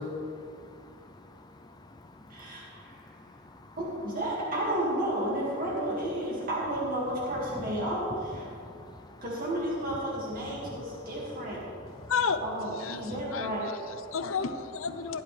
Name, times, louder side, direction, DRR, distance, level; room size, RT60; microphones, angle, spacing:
voice 1, 0.0-3.8 7.3-7.9 8.3-9.2 10.4-12.1 12.9-13.4 14.1-14.2, left 2 dB, 20° left, 5 dB, 0.5 m, -45 dB
voice 2, 2.3-3.0 3.8-8.5 9.2-11.6 12.4-13.7, right 1 dB, 40° right, -5 dB, 2.2 m, -32 dB
voice 3, 12.1-12.4 12.7-15.2, left 6 dB, 70° left, 10 dB, 0.6 m, -32 dB
16.5 x 10.0 x 3.4 m, 2.4 s
head